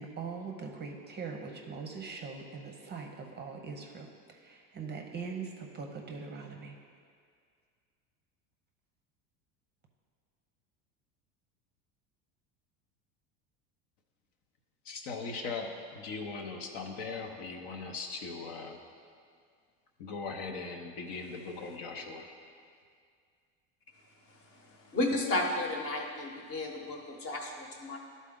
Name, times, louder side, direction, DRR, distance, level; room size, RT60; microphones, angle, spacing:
voice 1, 0.0-6.8, right 5 dB, 25° right, 2 dB, 0.6 m, -41 dB
voice 2, 14.9-18.8 20.0-22.3, left 4 dB, 60° left, 3 dB, 0.9 m, -39 dB
voice 3, 24.3-28.0, left 2 dB, 35° left, 2 dB, 1.1 m, -33 dB
11.5 x 4.1 x 3.7 m, 2.2 s
supercardioid pair, 110°, 40 cm